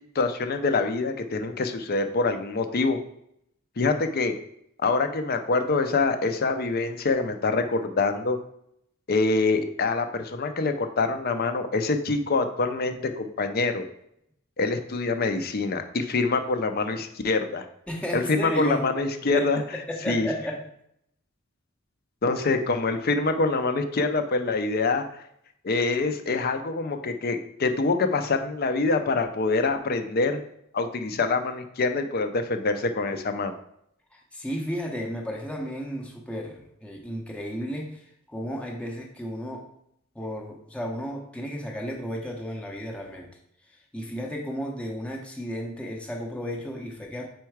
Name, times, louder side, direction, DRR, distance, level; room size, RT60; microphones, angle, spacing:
voice 1, 0.1-3.0 3.8-4.3 4.8-8.4 9.1-13.9 14.6-17.6 18.1-19.6 20.1-20.3 22.2-25.1 25.6-30.4 30.7-33.6, left 3 dB, 45° left, 8 dB, 0.5 m, -25 dB
voice 2, 17.9-20.7 34.1-39.7 40.1-43.3 43.6-47.3, equal, 5° left, 0 dB, 0.6 m, -33 dB
4.6 x 4.4 x 4.6 m, 0.73 s
head